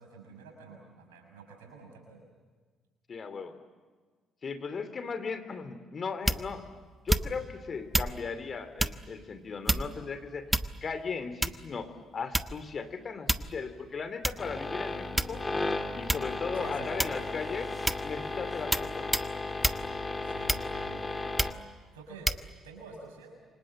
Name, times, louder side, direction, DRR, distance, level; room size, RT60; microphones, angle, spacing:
voice 1, 0.0-2.2 16.5-17.2 20.2-21.0 21.9-22.3 22.6-23.4, right 4 dB, 80° right, 3 dB, 6.1 m, -48 dB
voice 2, 3.1-3.5 4.4-6.6 7.0-10.5 10.8-15.4 15.9-17.7 18.0-19.1, left 5 dB, 40° left, 10 dB, 3.0 m, -37 dB
sound 1, 6.3-6.6 7.1-7.5 7.9-8.2 8.8-9.0 9.7-10.1 10.5-10.9 11.4-11.7 12.3-12.7 13.3-13.6 14.2-14.4 15.2-15.6 16.1-16.3 17.0-17.3 17.9-18.1 18.7-18.9 19.1-19.3 19.6-19.8 20.5-20.9 21.4-21.6 22.3-22.4, right 1 dB, 10° right, 1.1 m, -28 dB
sound 2, 14.4-21.5, left 2 dB, 25° left, 2.7 m, -35 dB
28.5 x 25.5 x 7.8 m, 1.4 s
figure-of-eight pair, 45°, 0 cm